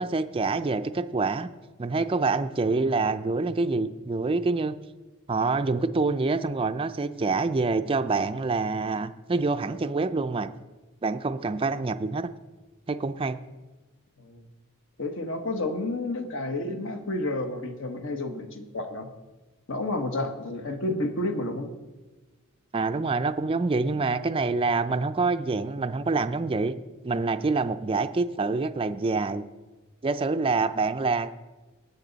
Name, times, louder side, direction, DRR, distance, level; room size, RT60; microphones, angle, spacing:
voice 1, 0.0-1.5 1.8-4.8 5.3-10.5 11.0-12.3 12.9-13.4 22.7-26.7 27.0-29.4 30.0-31.3, right 3 dB, 25° right, 9 dB, 0.4 m, -26 dB
voice 2, 15.0-19.1 19.7-21.7, left 2 dB, 60° left, 5 dB, 1.2 m, -30 dB
19.0 x 6.9 x 4.0 m, 1.2 s
head